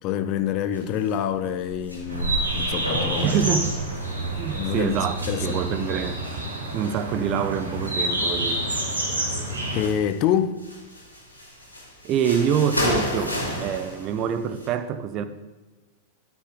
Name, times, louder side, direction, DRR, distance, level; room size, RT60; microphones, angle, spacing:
voice 1, 0.0-3.4 4.5-5.6 9.7-10.7, left 9 dB, 40° left, 0.7 m, -26 dB
sound 1, 0.7-1.2 1.4-7.0 7.5-8.5 8.8-10.2 10.6-14.7, equal, 90° left, 2.7 m, -32 dB
sound 2, 2.1-9.9, right 1 dB, 80° right, 2.9 m, -28 dB
voice 2, 3.2-3.7 4.4-5.1 5.4-6.2 6.7-8.6 12.0-15.3, right 8 dB, 35° right, 0.7 m, -26 dB
13.0 x 6.1 x 3.7 m
figure-of-eight pair, 90°, 0 cm